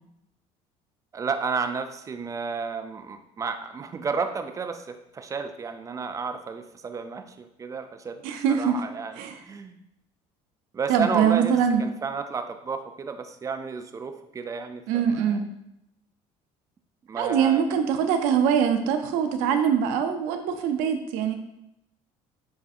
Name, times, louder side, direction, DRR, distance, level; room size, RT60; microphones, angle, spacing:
voice 1, 1.1-8.2 8.5-9.8 10.7-11.5 11.8-15.4 17.1-17.8, right 5 dB, 25° right, 8 dB, 0.3 m, -32 dB
voice 2, 8.2-8.8 9.2-9.4 10.9-11.8 14.9-15.4 17.2-21.4, right 7 dB, 85° right, 7 dB, 0.5 m, -23 dB
7.0 x 2.6 x 2.5 m, 0.85 s
cardioid pair, 110°, 14 cm